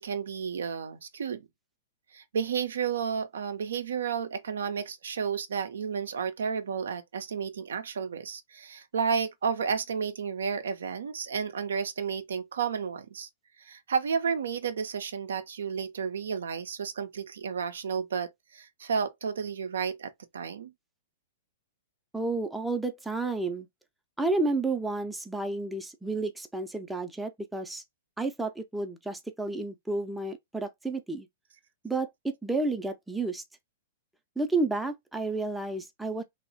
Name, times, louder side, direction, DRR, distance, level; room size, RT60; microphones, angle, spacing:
voice 1, 0.0-1.5 2.1-13.3 13.6-20.7, right 6 dB, 70° right, 0.4 m, -32 dB
voice 2, 22.1-23.7 24.2-27.8 28.2-31.3 31.8-33.4 34.4-36.2, right 2 dB, 5° right, 0.4 m, -31 dB
3.0 x 2.0 x 2.6 m
figure-of-eight pair, 105°, 0 cm